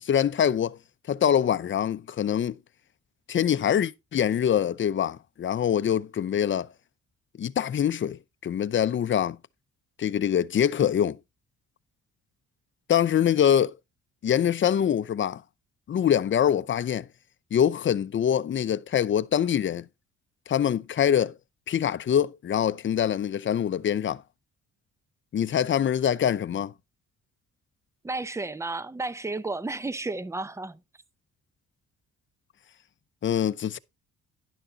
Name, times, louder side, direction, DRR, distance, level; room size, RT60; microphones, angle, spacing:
voice 1, 0.0-0.8 1.1-2.6 3.3-6.7 7.4-9.4 10.0-11.2 12.9-13.7 14.2-15.4 15.9-17.1 17.5-19.9 20.5-21.3 21.7-24.2 25.3-26.7 33.2-33.8, left 9 dB, 40° left, 0.6 m, -24 dB
voice 2, 28.0-30.8, right 3 dB, 10° right, 0.6 m, -32 dB
11.0 x 6.5 x 3.9 m
cardioid pair, 90°, 30 cm